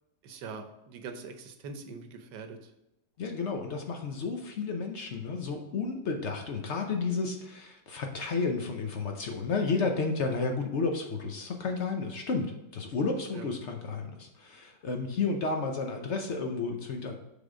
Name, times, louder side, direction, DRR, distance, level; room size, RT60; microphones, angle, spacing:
voice 1, 0.2-2.6 13.3-13.5, right 4 dB, 75° right, 7 dB, 1.4 m, -42 dB
voice 2, 3.2-17.1, left 4 dB, 65° left, 4 dB, 0.7 m, -32 dB
6.9 x 3.7 x 4.9 m, 0.91 s
omnidirectional pair, 1.9 m